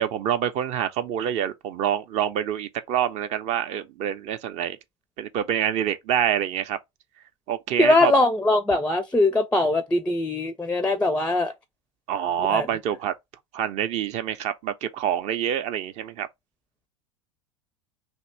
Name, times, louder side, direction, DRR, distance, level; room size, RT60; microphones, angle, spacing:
voice 1, 0.0-4.8 5.2-6.8 7.5-8.1 12.1-13.1 13.5-16.3, right 10 dB, 45° right, 0.5 m, -26 dB
voice 2, 7.8-11.5 12.5-12.7, left 2 dB, 10° left, 0.4 m, -21 dB
2.9 x 2.6 x 4.3 m
figure-of-eight pair, 80°, 17 cm